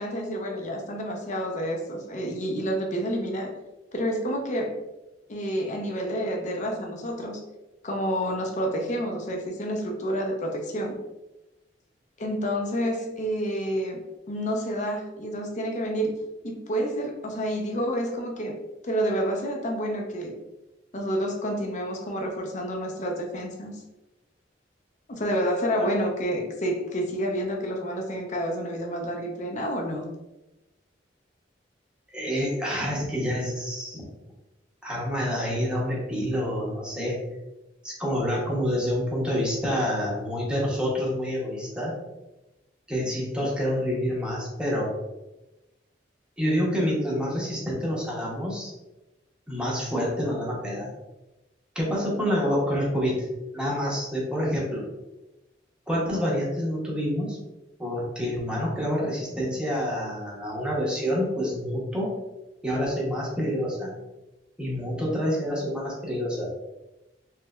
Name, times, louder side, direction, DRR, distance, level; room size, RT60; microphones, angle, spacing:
voice 1, 0.0-3.5 3.9-4.8 5.3-7.4 7.8-11.0 12.2-14.0 14.3-16.1 16.4-18.6 18.8-20.4 20.9-23.7 25.1-30.1, equal, 40° left, 1 dB, 0.6 m, -29 dB
voice 2, 32.1-34.0 34.8-37.2 37.8-41.9 42.9-44.9 46.4-48.7 49.5-50.9 51.7-53.3 53.5-54.9 55.9-57.4 57.8-62.1 62.6-63.9 64.6-66.5, equal, 5° right, -4 dB, 0.9 m, -27 dB
3.2 x 3.0 x 2.3 m, 0.99 s
head